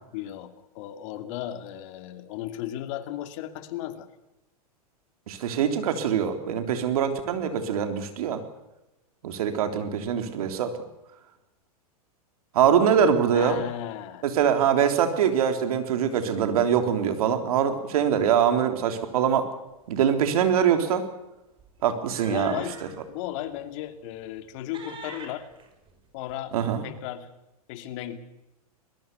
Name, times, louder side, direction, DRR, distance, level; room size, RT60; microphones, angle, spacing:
voice 1, 0.1-4.1 13.3-14.2 22.3-22.8 23.1-25.5 26.1-26.5 26.8-27.3 27.7-28.2, left 12 dB, 55° left, 9 dB, 2.7 m, -35 dB
voice 2, 5.3-8.4 9.2-10.7 12.5-13.6 14.2-19.5 19.9-21.1 21.8-22.6 26.5-26.8, right 8 dB, 70° right, 7 dB, 3.5 m, -23 dB
sound 1, 19.8-20.0 20.3-20.5 21.6-23.0 23.5-23.6 24.1-24.5 24.7-26.3, right 4 dB, 25° right, 5.7 m, -44 dB
21.5 x 21.5 x 7.0 m, 0.96 s
hypercardioid pair, 115°, 19 cm